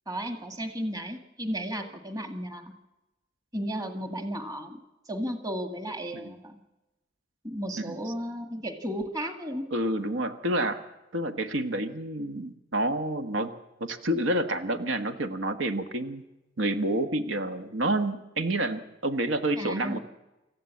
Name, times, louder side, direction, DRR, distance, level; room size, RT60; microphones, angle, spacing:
voice 1, 0.1-2.7 3.5-4.8 5.1-6.6 7.4-9.7 19.6-20.0, equal, 20° right, 6 dB, 1.8 m, -34 dB
voice 2, 9.7-10.8 11.1-13.5 13.8-16.2 16.6-20.0, right 1 dB, 90° right, 9 dB, 1.4 m, -29 dB
26.0 x 14.5 x 8.4 m, 1.0 s
head